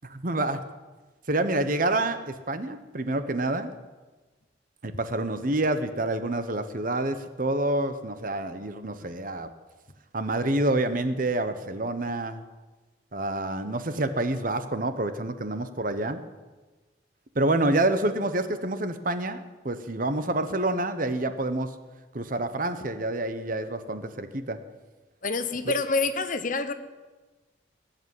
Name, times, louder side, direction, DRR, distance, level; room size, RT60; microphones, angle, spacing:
voice 1, 0.0-0.6 1.3-3.7 4.8-9.5 10.1-12.4 13.1-16.2 17.3-21.7 22.1-24.6 25.7-25.8, right 2 dB, 45° right, 10 dB, 1.1 m, -28 dB
voice 2, 25.2-26.7, left 3 dB, 45° left, 10 dB, 0.9 m, -27 dB
20.0 x 7.2 x 9.7 m, 1.2 s
head